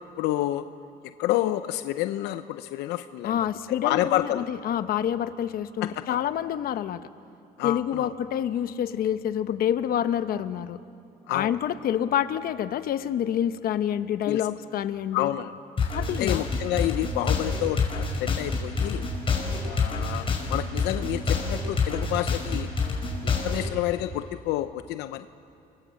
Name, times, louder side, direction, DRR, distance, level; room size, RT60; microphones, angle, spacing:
voice 1, 0.2-0.7 1.2-3.4 3.7-4.5 5.8-6.2 7.6-8.1 11.3-11.5 14.2-14.5 15.1-15.5 16.2-19.1 19.6-22.7 23.2-25.3, left 14 dB, 85° left, 10 dB, 0.7 m, -29 dB
voice 2, 3.2-7.0 7.6-10.8 11.3-15.3 15.9-16.4, left 10 dB, 60° left, 11 dB, 1.0 m, -27 dB
sound 1, 15.8-23.7, left 4 dB, 30° left, 5.7 m, -27 dB
29.5 x 22.5 x 7.7 m, 2.6 s
cardioid pair, 110°, 17 cm